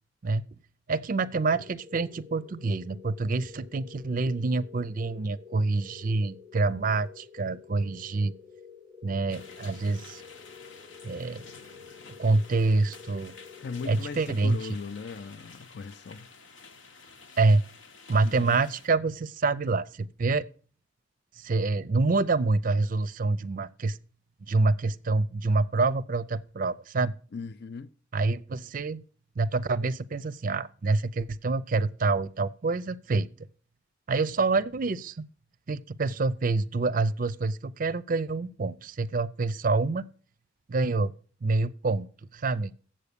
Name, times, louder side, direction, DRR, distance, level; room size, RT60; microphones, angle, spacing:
voice 1, 0.9-8.3 9.0-10.2 11.0-11.4 12.2-13.3 13.9-14.6 17.4-17.6 18.1-20.4 21.4-24.0 24.5-27.1 28.1-29.0 29.4-33.3 34.1-35.3 35.7-40.1 40.7-41.1 41.4-42.7, right 3 dB, 45° right, 0.5 m, -27 dB
sound 1, 1.5-14.7, left 6 dB, ahead, 0.8 m, -50 dB
sound 2, 9.3-18.9, left 4 dB, 70° left, 1.1 m, -50 dB
voice 2, 13.6-16.3 18.2-18.6 27.3-27.9, left 4 dB, 55° left, 0.4 m, -38 dB
8.1 x 7.5 x 6.8 m
head